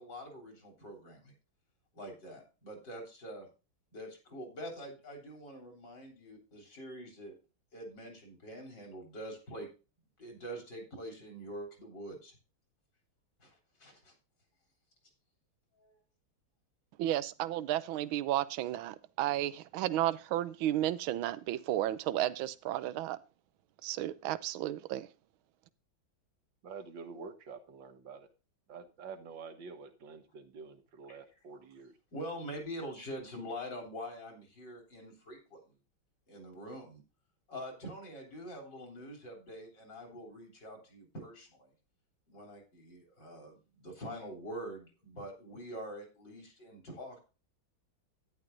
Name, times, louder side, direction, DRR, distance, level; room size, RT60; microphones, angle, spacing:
voice 1, 0.0-1.3 1.9-3.5 3.9-7.4 7.7-9.7 10.2-12.3 13.4-13.5 13.8-14.1 15.8-15.9 32.1-35.6 36.3-37.0 37.5-41.7 42.3-47.2, equal, 60° left, 2 dB, 4.1 m, -45 dB
voice 2, 17.0-23.2 23.8-25.1, right 13 dB, 85° right, 15 dB, 1.5 m, -33 dB
voice 3, 26.6-28.3 28.7-31.9, right 5 dB, 70° right, 8 dB, 2.0 m, -48 dB
11.5 x 10.5 x 2.6 m, 0.31 s
omnidirectional pair, 2.2 m